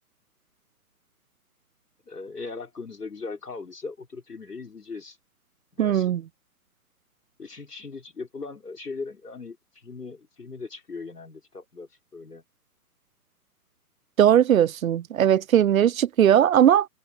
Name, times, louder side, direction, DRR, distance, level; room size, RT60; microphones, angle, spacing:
voice 1, 2.1-5.2 5.7-6.2 7.4-12.4, left 4 dB, 80° left, 5.9 m, -39 dB
voice 2, 5.8-6.2 14.2-16.9, right 10 dB, 60° right, 0.6 m, -19 dB
figure-of-eight pair, 130°, 46 cm